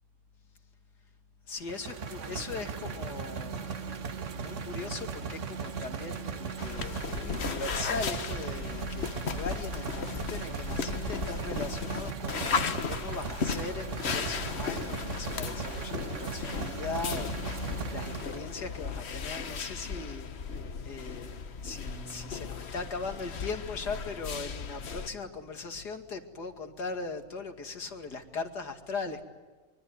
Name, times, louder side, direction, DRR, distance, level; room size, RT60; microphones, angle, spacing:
voice 1, 1.5-3.7 4.3-29.2, left 4 dB, 80° left, 6 dB, 2.9 m, -39 dB
sound 1, 1.6-18.5, right 5 dB, 50° right, 1.5 m, -38 dB
sound 2, 6.6-25.1, left 6 dB, 45° left, 1.2 m, -36 dB
Bass guitar, 21.8-28.1, equal, 70° right, 3.9 m, -55 dB
24.5 x 23.5 x 9.6 m, 1.3 s
omnidirectional pair, 1.7 m